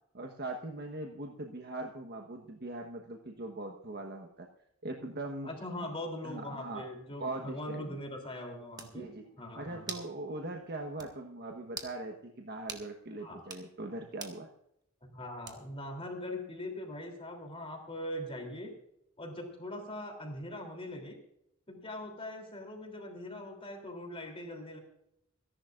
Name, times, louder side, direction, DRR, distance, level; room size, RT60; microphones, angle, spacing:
voice 1, 0.1-4.5 4.8-5.5 6.2-6.9 7.2-8.0 8.9-9.2 9.5-14.5, right 2 dB, 50° right, 3 dB, 1.2 m, -41 dB
voice 2, 5.4-9.1 9.4-9.9 13.2-13.4 15.1-18.7 19.2-21.2 21.7-24.8, left 1 dB, 25° left, 2 dB, 3.2 m, -41 dB
Close Combat Hand Slap Hits Face Various, 8.3-8.4 8.8-9.0 9.9-10.1 10.5-10.6 11.0-11.1 11.7-12.0 12.7-12.9 13.4-13.7 14.2-14.4 15.5-15.8, right 4 dB, 20° right, 1.5 m, -43 dB
27.5 x 11.5 x 2.5 m, 0.77 s
head